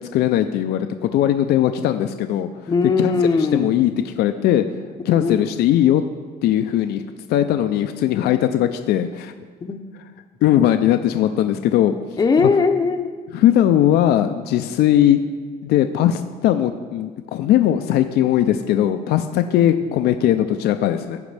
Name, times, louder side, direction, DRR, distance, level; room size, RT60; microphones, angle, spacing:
voice 1, 0.1-2.5 3.0-3.1 3.5-4.7 5.1-6.0 6.4-7.0 7.3-9.3 10.4-11.9 12.4-12.5 13.3-15.2 15.6-21.2, left 11 dB, 70° left, 8 dB, 0.4 m, -19 dB
voice 2, 2.7-3.8 5.1-5.4 9.6-9.8 12.2-13.1 19.5-19.6, left 4 dB, 20° left, 5 dB, 0.6 m, -19 dB
15.5 x 5.2 x 3.3 m, 1.5 s
cardioid pair, 110°, 17 cm